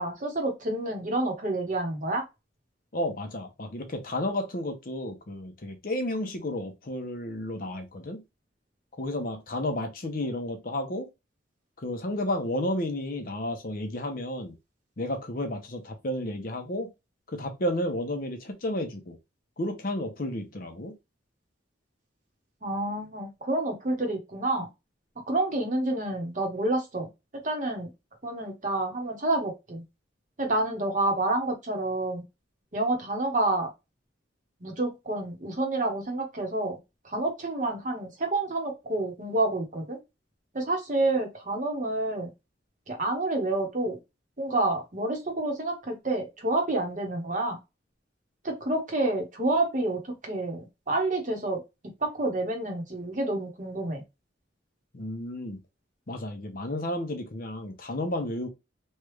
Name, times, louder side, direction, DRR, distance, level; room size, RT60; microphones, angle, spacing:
voice 1, 0.0-2.2 22.6-24.7 25.3-27.1 27.4-27.9 28.2-29.8 30.4-32.2 32.7-33.7 34.6-36.8 37.0-40.0 40.5-42.3 42.9-44.0 44.4-47.6 48.4-51.6 52.0-54.0, right 2 dB, 40° right, 1.0 m, -28 dB
voice 2, 2.9-8.2 8.9-11.1 11.8-14.5 15.0-16.9 17.3-19.2 19.6-21.0 54.9-55.6 56.1-58.5, left 1 dB, 45° left, 0.7 m, -32 dB
3.2 x 2.3 x 3.1 m
head